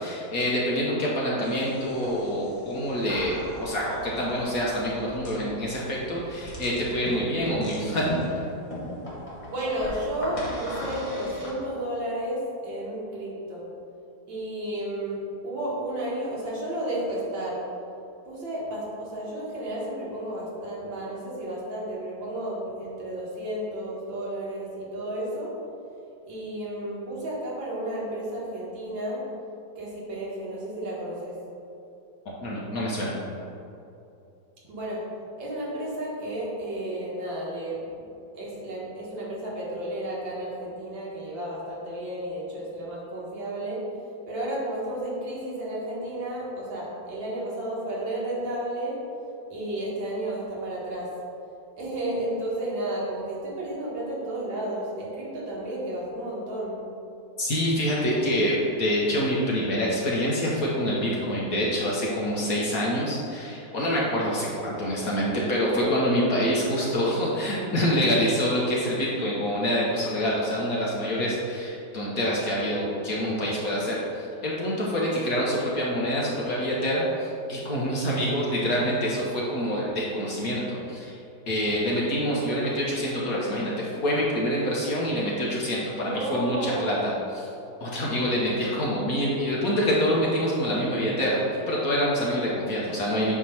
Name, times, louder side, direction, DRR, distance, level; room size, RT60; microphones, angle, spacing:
voice 1, 0.0-3.3 3.6-8.4 32.4-33.2 57.4-81.2 81.5-87.5 87.8-93.3, equal, 55° left, -5 dB, 1.2 m, -26 dB
sound 1, 1.4-11.5, left 1 dB, 20° left, 1.1 m, -38 dB
voice 2, 9.5-13.7 14.3-17.6 18.3-25.5 26.3-29.2 29.8-31.4 34.7-35.0 35.4-38.0 38.3-43.8 44.3-49.0 49.5-51.1 51.7-56.8 75.1-75.3 86.0-87.1, right 1 dB, 70° right, -5 dB, 2.2 m, -32 dB
8.3 x 3.0 x 5.6 m, 2.7 s
omnidirectional pair, 2.2 m